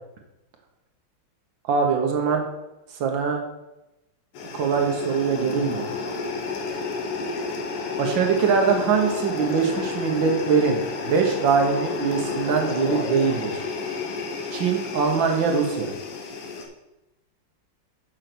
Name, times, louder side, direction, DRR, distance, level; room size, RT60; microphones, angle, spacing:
voice 1, 1.7-2.4 2.9-3.4 4.5-5.9 8.0-13.6 14.5-15.9, right 6 dB, 65° right, 3 dB, 1.8 m, -22 dB
sound 1, 4.3-16.7, left 4 dB, 85° left, 2.1 m, -31 dB
6.7 x 5.6 x 6.0 m, 0.96 s
omnidirectional pair, 2.4 m